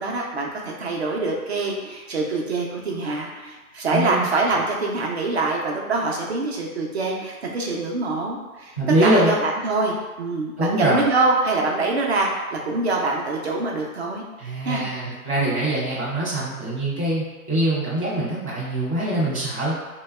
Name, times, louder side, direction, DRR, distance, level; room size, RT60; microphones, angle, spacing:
voice 1, 0.0-8.7 9.0-14.2 14.6-14.8, right 3 dB, 45° right, -1 dB, 0.5 m, -24 dB
voice 2, 3.9-4.3 8.8-9.3 10.6-11.0 14.4-19.7, right 1 dB, 25° left, -9 dB, 0.4 m, -23 dB
2.7 x 2.2 x 3.1 m, 1.2 s
hypercardioid pair, 150°, 45 cm